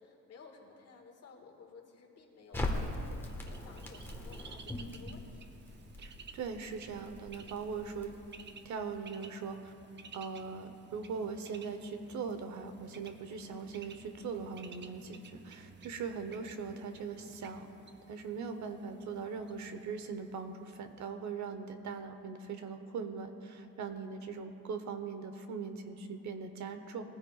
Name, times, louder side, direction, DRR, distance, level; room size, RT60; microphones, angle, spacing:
voice 1, 0.0-5.5, left 5 dB, 55° left, 1 dB, 1.8 m, -55 dB
Crackle, 2.5-8.7, left 1 dB, 5° left, 1.4 m, -41 dB
Bird, 3.2-21.0, right 5 dB, 35° right, 0.6 m, -55 dB
voice 2, 6.0-8.1 8.6-9.7 10.1-17.7 18.1-27.0, right 5 dB, 70° right, 8 dB, 1.0 m, -40 dB
19.5 x 15.0 x 2.4 m, 2.8 s
cardioid pair, 135°, 30 cm